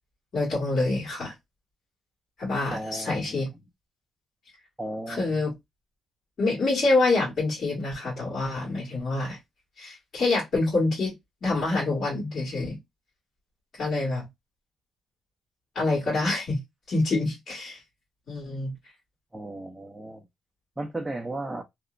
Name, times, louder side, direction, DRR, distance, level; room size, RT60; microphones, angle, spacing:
voice 1, 0.3-1.3 2.4-3.5 5.1-5.5 6.4-9.4 9.8-11.1 11.4-12.8 13.8-14.3 15.7-16.6 16.9-17.8 18.3-18.7, left 2 dB, 55° left, 1.7 m, -26 dB
voice 2, 2.7-3.4 4.8-5.4 19.3-20.2 20.8-21.6, right 1 dB, 10° right, 0.4 m, -35 dB
3.0 x 2.0 x 2.5 m
cardioid pair, 90°, 0 cm